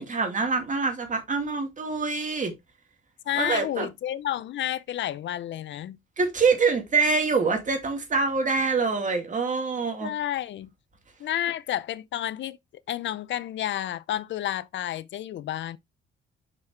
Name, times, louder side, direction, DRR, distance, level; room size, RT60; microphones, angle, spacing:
voice 1, 0.0-2.5 3.4-3.9 6.2-10.1, right 4 dB, 40° right, 2.4 m, -25 dB
voice 2, 3.3-6.0 10.0-10.7 11.2-12.6 12.9-15.8, left 12 dB, 65° left, 0.5 m, -30 dB
6.1 x 5.8 x 3.2 m
cardioid pair, 85°, 20 cm